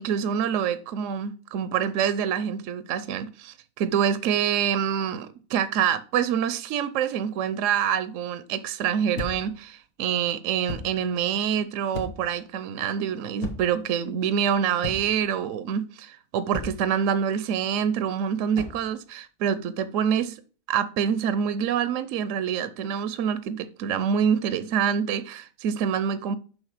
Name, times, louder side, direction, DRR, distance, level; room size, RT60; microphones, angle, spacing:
voice 1, 0.0-20.4 20.7-26.4, right 8 dB, 70° right, 0.9 m, -26 dB
sound 1, 9.2-9.6 10.7-11.0 11.9-12.4 13.4-13.8 14.8-15.2 16.5-16.9 18.5-18.9, left 3 dB, 90° left, 1.7 m, -35 dB
6.4 x 5.6 x 4.8 m
omnidirectional pair, 1.5 m